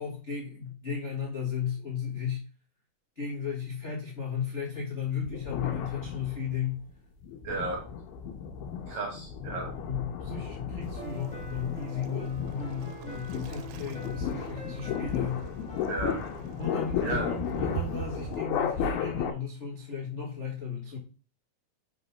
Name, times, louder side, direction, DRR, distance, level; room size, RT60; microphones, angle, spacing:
voice 1, 0.0-2.4 3.1-6.8 9.8-15.4 16.6-21.0, left 7 dB, 70° left, -3 dB, 0.6 m, -35 dB
sound 1, 5.3-6.7 7.2-19.3, left 7 dB, 85° left, 2.9 m, -34 dB
voice 2, 7.4-7.8 8.9-9.7 15.9-16.3 17.0-17.3, right 3 dB, 70° right, 1 dB, 1.7 m, -33 dB
Waves surf, 10.8-18.4, right 12 dB, 85° right, 2.5 m, -43 dB
sound 2, 10.9-17.5, equal, 5° left, 1.2 m, -48 dB
6.0 x 4.1 x 5.6 m, 0.34 s
omnidirectional pair, 4.3 m